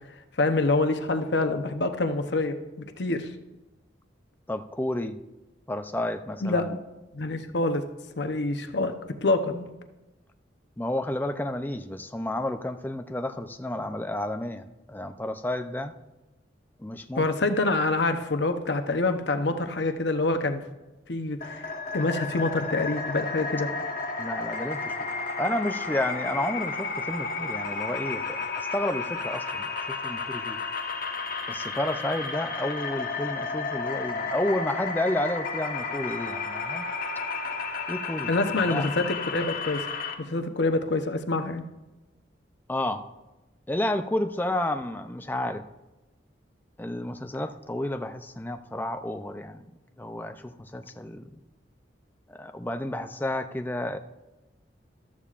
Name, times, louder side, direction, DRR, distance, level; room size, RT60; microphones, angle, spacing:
voice 1, 0.4-2.5 3.0-3.3 6.4-6.8 7.1-7.8 8.2-8.9 9.2-9.6 17.1-20.6 21.1-23.7 38.3-39.9 40.2-41.6, left 2 dB, 70° left, 7 dB, 0.8 m, -26 dB
voice 2, 4.5-5.2 5.7-6.7 10.8-15.9 16.8-17.3 24.2-24.9 25.4-30.6 31.5-36.9 37.9-38.3 38.7-38.9 42.7-43.0 43.7-45.6 46.8-49.6 50.0-51.3 52.3-54.0, left 1 dB, 10° left, 8 dB, 0.4 m, -31 dB
sound 1, 21.4-40.1, left 4 dB, 50° left, 1.2 m, -32 dB
14.0 x 13.0 x 2.5 m, 1.0 s
head